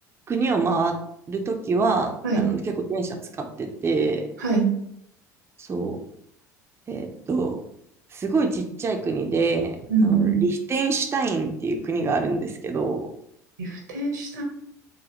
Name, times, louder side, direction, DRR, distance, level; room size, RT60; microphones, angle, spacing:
voice 1, 0.3-0.9 1.3-4.3 5.6-6.0 6.9-7.6 8.1-9.8 10.0-13.1, right 3 dB, 25° right, 3 dB, 0.6 m, -25 dB
voice 2, 4.4-4.7 9.9-10.4 13.6-14.4, right 5 dB, 90° right, 1 dB, 1.0 m, -23 dB
3.9 x 2.7 x 3.0 m, 0.72 s
hypercardioid pair, 75°, 9 cm